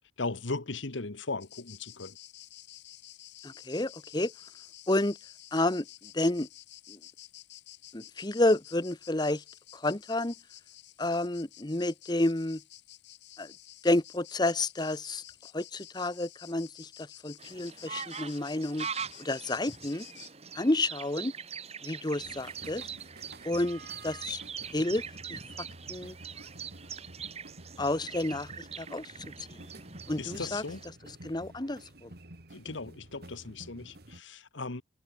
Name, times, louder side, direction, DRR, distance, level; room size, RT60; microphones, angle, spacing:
voice 1, 0.2-2.2 30.2-30.8 32.5-34.8, left 3 dB, 80° left, 1.5 m, -37 dB
sound 1, 1.4-20.3, left 14 dB, 65° left, 3.1 m, -51 dB
voice 2, 3.4-4.3 4.9-5.2 5.5-5.8 6.1-6.5 6.9-7.0 7.9-9.4 9.7-10.3 11.0-12.6 13.4-13.5 13.8-15.2 15.5-16.9 17.2-18.9 19.2-20.1 20.5-21.3 21.8-22.8 23.4-24.4 24.7-25.0 25.3-25.4 25.9-26.1 27.8-29.1 30.1-30.6 31.2-32.1, left 2 dB, 20° left, 0.9 m, -30 dB
sound 2, 17.4-30.9, right 6 dB, 35° right, 4.4 m, -43 dB
sound 3, 22.2-34.2, right 1 dB, 55° right, 2.8 m, -50 dB
head